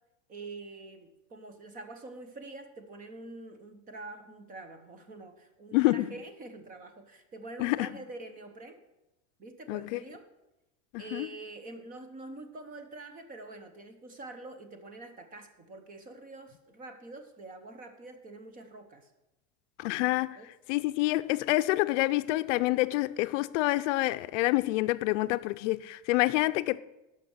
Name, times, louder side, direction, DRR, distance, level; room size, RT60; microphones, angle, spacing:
voice 1, 0.3-8.8 9.4-10.3 11.0-19.1 20.4-20.5, right 2 dB, 20° right, 0.9 m, -46 dB
voice 2, 5.7-6.1 7.6-7.8 9.7-10.0 10.9-11.3 19.8-20.4 20.7-26.8, left 19 dB, 75° left, 0.5 m, -27 dB
11.5 x 6.0 x 6.3 m
supercardioid pair, 165°, 37 cm